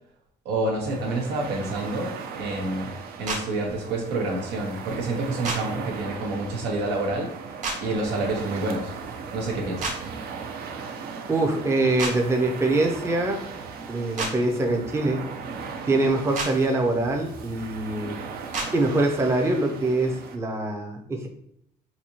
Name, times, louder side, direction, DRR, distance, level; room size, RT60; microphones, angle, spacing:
voice 1, 0.4-2.9 3.2-7.3 7.8-8.9 9.3-10.0, right 2 dB, 85° right, -1 dB, 1.0 m, -28 dB
sound 1, 0.8-20.4, right 5 dB, 65° right, 0.5 m, -38 dB
sound 2, 3.3-3.4 5.4-5.6 7.6-7.8 9.8-10.0 12.0-12.1 14.2-14.3 16.3-16.5 18.5-18.7, right 3 dB, 45° right, 1.0 m, -28 dB
voice 2, 11.3-13.4 13.9-15.2 15.9-18.2 18.7-21.3, right 2 dB, 15° right, 2 dB, 0.5 m, -24 dB
4.1 x 2.7 x 2.9 m, 0.72 s
cardioid pair, 110°, 17 cm